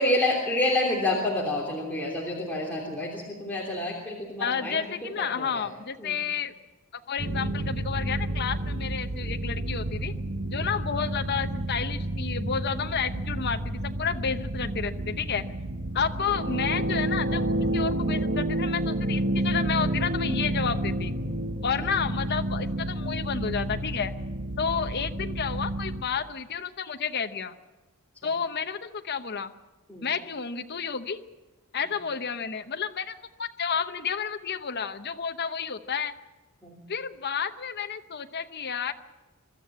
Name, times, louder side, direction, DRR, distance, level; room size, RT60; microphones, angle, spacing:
voice 1, 0.0-4.9 5.2-5.7 6.0-6.2 29.9-30.1 36.6-36.8, left 1 dB, 10° left, -4 dB, 3.2 m, -28 dB
voice 2, 4.4-6.5 6.9-10.1 10.5-15.4 15.9-17.4 17.7-21.1 21.6-24.1 24.6-27.5 28.2-29.5 30.0-31.2 31.7-36.1 36.9-38.9, left 6 dB, 50° left, 7 dB, 0.9 m, -31 dB
sound 1, 7.2-26.1, right 1 dB, 50° right, 1.4 m, -30 dB
23.5 x 13.0 x 8.6 m, 1.1 s
head